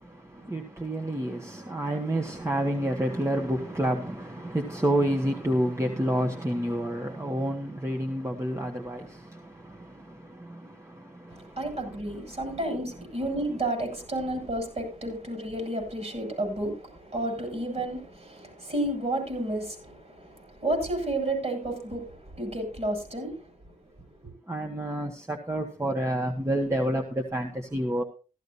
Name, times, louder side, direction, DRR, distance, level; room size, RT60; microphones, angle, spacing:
voice 1, 0.0-11.7 24.5-28.0, right 1 dB, 20° right, 1.8 m, -29 dB
voice 2, 11.3-23.7 24.2-24.3, right 1 dB, 50° right, 7.6 m, -31 dB
15.0 x 13.0 x 2.7 m
cardioid pair, 60°, 14 cm